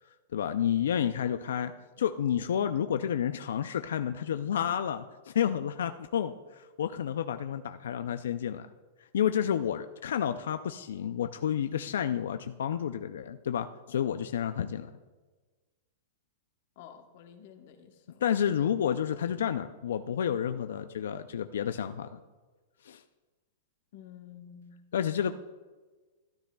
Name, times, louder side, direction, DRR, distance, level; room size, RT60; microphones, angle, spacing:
voice 1, 0.3-1.7 2.0-8.7 9.1-14.9 18.2-22.2 22.8-23.0 24.9-25.3, left 9 dB, 90° left, 10 dB, 0.4 m, -30 dB
voice 2, 16.8-18.2 23.9-24.7, left 9 dB, 45° left, 5 dB, 1.0 m, -50 dB
13.0 x 12.0 x 2.3 m, 1.3 s
supercardioid pair, 175°, 0 cm